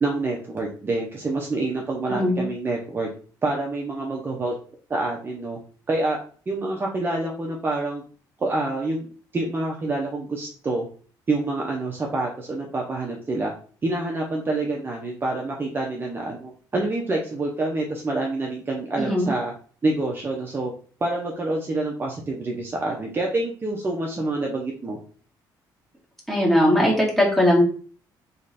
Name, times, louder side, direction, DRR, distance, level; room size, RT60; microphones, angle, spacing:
voice 1, 0.0-3.1 3.4-4.5 4.9-5.6 5.9-6.2 6.5-8.0 8.4-10.9 11.3-13.5 13.8-19.5 19.8-20.7 21.0-25.0, right 2 dB, 25° right, -1 dB, 0.8 m, -27 dB
voice 2, 2.1-2.4 19.0-19.3 26.3-27.6, left 1 dB, 5° left, -4 dB, 2.1 m, -19 dB
4.0 x 3.1 x 4.1 m, 0.42 s
cardioid pair, 110°, 8 cm